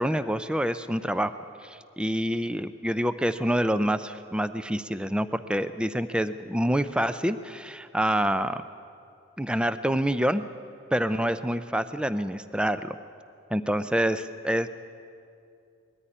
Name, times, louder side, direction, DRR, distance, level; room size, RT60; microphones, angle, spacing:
voice 1, 0.0-1.3 1.6-8.6 9.4-10.4 10.9-13.0 13.5-14.7, equal, 5° right, 12 dB, 0.4 m, -27 dB
20.5 x 14.0 x 10.0 m, 2.5 s
head